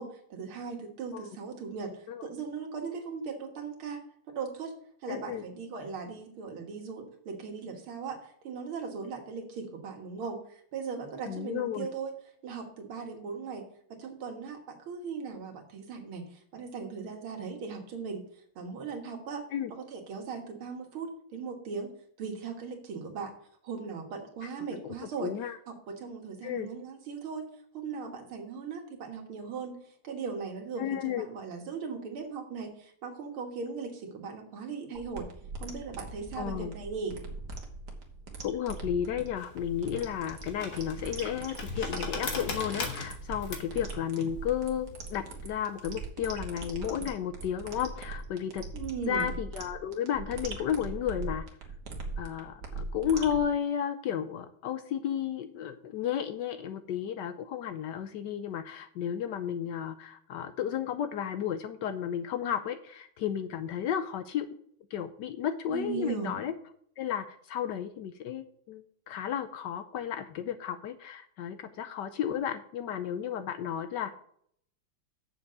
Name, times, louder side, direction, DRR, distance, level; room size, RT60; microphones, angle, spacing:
voice 1, 0.0-4.7 5.0-12.1 12.4-13.7 13.9-18.2 18.6-19.4 19.7-21.9 22.2-23.3 23.6-25.3 25.7-27.5 27.7-29.8 30.0-35.3 35.6-37.2 48.7-49.3 65.7-66.4, right 5 dB, 85° right, 3 dB, 2.3 m, -38 dB
voice 2, 5.1-5.5 11.3-11.9 19.5-19.7 24.8-24.9 25.2-25.6 26.4-26.7 30.8-31.3 36.4-36.7 38.4-48.6 49.1-51.4 52.2-64.5 64.9-66.5 67.0-74.1, left 9 dB, 75° left, 10 dB, 1.1 m, -33 dB
sound 1, 34.9-53.4, right 3 dB, 55° right, 1.8 m, -41 dB
sound 2, 39.4-46.0, left 4 dB, 50° left, 1.8 m, -39 dB
7.2 x 6.1 x 6.7 m, 0.65 s
omnidirectional pair, 2.3 m